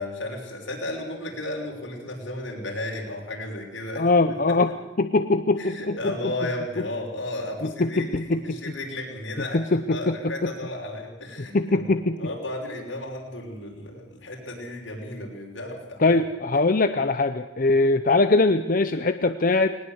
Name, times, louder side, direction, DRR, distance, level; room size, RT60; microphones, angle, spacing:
voice 1, 0.0-4.4 5.6-11.8 12.2-16.1, left 1 dB, 85° left, 0 dB, 6.0 m, -34 dB
voice 2, 3.9-4.7 5.0-6.0 7.6-8.7 9.5-10.5 11.4-12.2 16.0-19.8, left 3 dB, 45° left, 9 dB, 0.7 m, -22 dB
20.0 x 19.5 x 8.0 m, 0.89 s
head